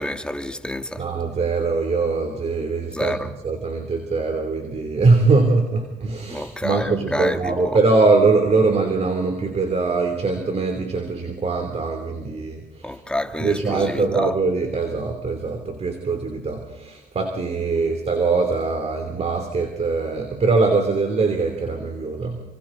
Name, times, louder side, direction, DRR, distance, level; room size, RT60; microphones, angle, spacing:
voice 1, 0.0-1.1 2.9-3.3 6.3-7.8 12.8-14.3, left 1 dB, 5° left, 1.9 m, -28 dB
voice 2, 1.0-3.2 3.4-13.0 13.4-22.4, right 3 dB, 40° right, 2.9 m, -22 dB
28.5 x 24.5 x 3.9 m
cardioid pair, 90°, 16 cm